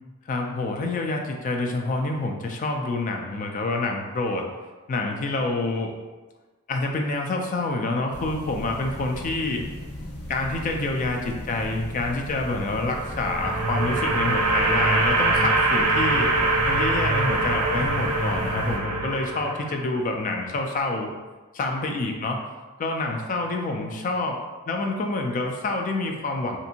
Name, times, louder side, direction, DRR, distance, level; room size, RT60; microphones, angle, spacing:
voice 1, 0.3-4.4 4.9-6.0 6.7-9.6 10.0-16.3 16.6-21.1 21.5-22.4 22.8-26.6, left 2 dB, 35° left, 2 dB, 0.3 m, -27 dB
sound 1, 8.1-18.8, left 1 dB, 85° left, 0.8 m, -37 dB
sound 2, 12.8-20.0, right 2 dB, 90° right, 0.5 m, -23 dB
2.6 x 2.5 x 2.7 m, 1.3 s
head